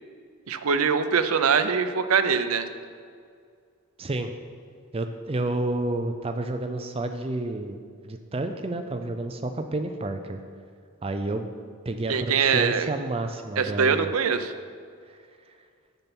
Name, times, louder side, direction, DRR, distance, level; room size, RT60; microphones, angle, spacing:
voice 1, 0.5-2.7 12.1-12.9 13.6-14.5, right 6 dB, 85° right, 9 dB, 0.6 m, -23 dB
voice 2, 4.0-4.3 4.9-10.4 11.0-11.5 11.9-14.1 15.1-15.2, right 2 dB, 25° right, 7 dB, 0.4 m, -30 dB
8.9 x 6.9 x 6.0 m, 2.2 s
head